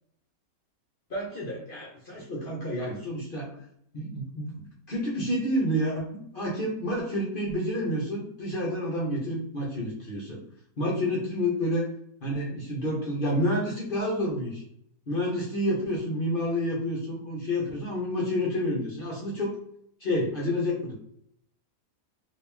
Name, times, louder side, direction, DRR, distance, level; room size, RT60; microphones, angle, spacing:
voice 1, 1.1-3.6 3.9-10.4 10.8-11.9 12.2-14.6 15.1-19.5 20.0-20.9, equal, 45° left, -3 dB, 0.9 m, -29 dB
2.9 x 2.8 x 3.5 m, 0.69 s
omnidirectional pair, 1.5 m